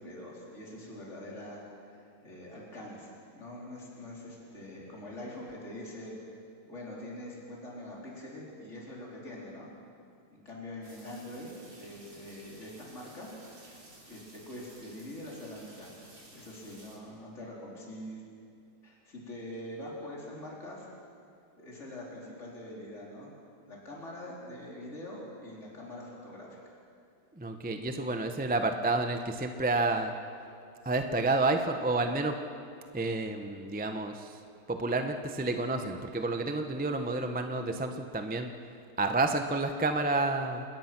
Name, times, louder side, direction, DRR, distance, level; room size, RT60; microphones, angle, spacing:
voice 1, 0.0-1.6 1.9-6.2 6.7-9.7 10.3-13.3 13.7-13.8 14.0-15.9 16.3-18.2 18.8-20.9 21.6-23.3 23.7-26.6, left 1 dB, 30° left, -4 dB, 4.5 m, -44 dB
sound 1, 10.8-17.0, right 1 dB, 60° right, 4.9 m, -55 dB
voice 2, 27.3-30.1 30.8-32.4 32.9-34.3 34.7-38.5 39.0-40.6, right 2 dB, 15° right, 6 dB, 0.3 m, -30 dB
28.0 x 20.0 x 6.1 m, 2.4 s
omnidirectional pair, 2.3 m